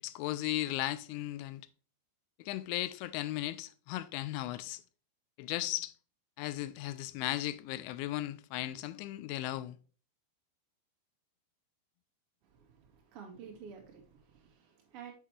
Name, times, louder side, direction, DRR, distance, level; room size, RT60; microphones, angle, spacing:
voice 1, 0.0-1.6 2.4-4.8 5.4-5.9 6.4-9.8, left 15 dB, 85° left, 3.0 m, -36 dB
voice 2, 12.4-15.1, right 7 dB, 40° right, 2.3 m, -51 dB
7.5 x 6.4 x 3.2 m
omnidirectional pair, 5.4 m